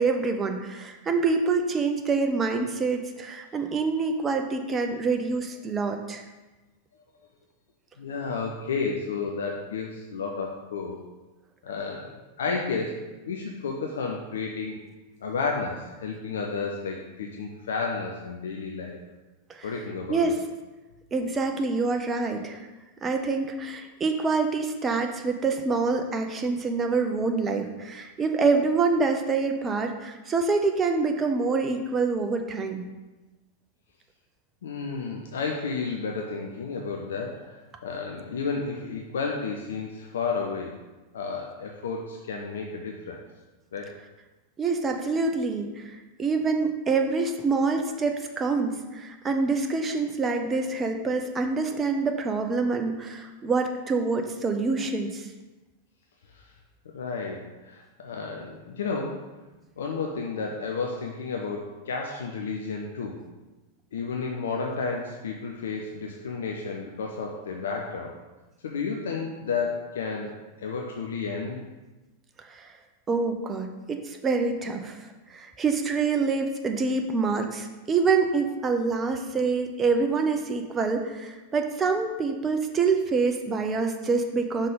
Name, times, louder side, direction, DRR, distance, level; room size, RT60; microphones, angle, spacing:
voice 1, 0.0-6.2 19.5-19.7 20.1-20.4 21.1-22.7 23.0-32.9 44.6-55.3 72.5-72.7 73.1-84.7, right 4 dB, 20° right, 5 dB, 0.6 m, -26 dB
voice 2, 8.0-11.0 11.6-12.1 12.4-14.8 15.2-19.0 19.6-20.3 34.6-40.8 41.1-43.2 43.7-43.9 56.3-56.5 56.9-59.2 59.8-63.2 63.9-68.2 68.6-70.3 70.6-71.6, left 4 dB, 65° left, 0 dB, 0.6 m, -32 dB
5.7 x 3.6 x 5.1 m, 1.1 s
figure-of-eight pair, 90°, 0 cm